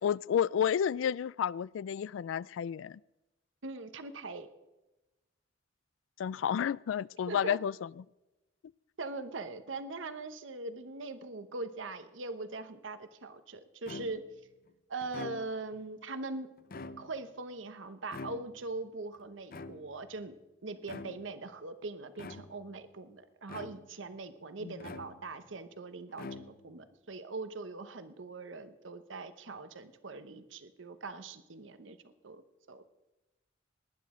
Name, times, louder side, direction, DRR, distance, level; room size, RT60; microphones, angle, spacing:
voice 1, 0.0-3.0 6.2-7.9 24.6-24.7, left 8 dB, 85° left, 0.3 m, -31 dB
voice 2, 3.6-4.5 7.3-7.6 9.0-14.2 14.9-16.5 17.0-20.3 20.6-32.4 32.7-32.8, right 3 dB, 80° right, 0.9 m, -41 dB
sound 1, 13.9-14.4 15.0-15.8 16.6-17.4 18.1-18.8 19.5-20.1 20.8-21.4 22.2-22.8 23.5-24.1 24.8-25.5 26.1-26.8, left 3 dB, 50° left, 0.6 m, -46 dB
19.5 x 10.5 x 3.7 m
head